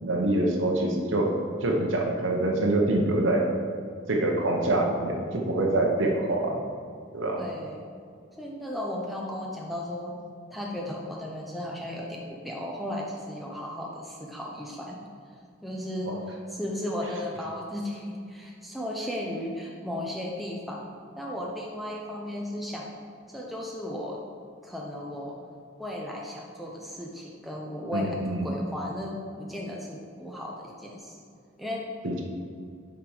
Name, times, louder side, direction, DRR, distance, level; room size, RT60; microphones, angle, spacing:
voice 1, 0.0-1.3 1.6-3.5 4.1-6.6 7.1-7.4 16.1-16.2 27.9-28.5 32.0-32.2, right 2 dB, 75° right, 1 dB, 1.0 m, -25 dB
voice 2, 7.3-7.8 8.4-10.2 10.5-15.1 15.6-16.1 16.5-22.9 23.3-24.2 24.6-25.4 25.8-31.2 31.6-31.8, left 1 dB, ahead, -2 dB, 0.6 m, -35 dB
7.0 x 5.1 x 4.8 m, 2.2 s
head